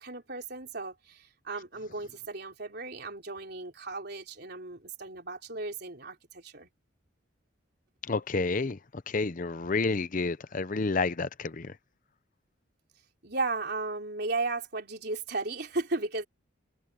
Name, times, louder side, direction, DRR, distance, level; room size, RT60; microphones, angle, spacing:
voice 1, 0.0-6.7 13.2-16.3, right 3 dB, 55° right, 3.7 m, -35 dB
voice 2, 8.1-11.8, left 3 dB, 40° left, 0.7 m, -30 dB
head